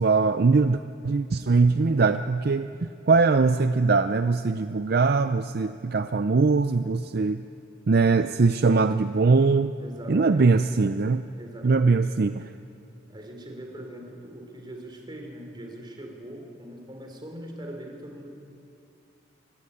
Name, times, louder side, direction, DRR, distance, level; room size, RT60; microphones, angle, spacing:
voice 1, 0.0-7.4 7.9-9.7 10.1-11.2 11.6-12.4, right 4 dB, 55° right, 10 dB, 0.5 m, -21 dB
voice 2, 9.8-10.5 11.3-12.1 13.1-18.3, equal, 25° right, 3 dB, 3.7 m, -41 dB
25.0 x 15.0 x 9.9 m, 2.6 s
head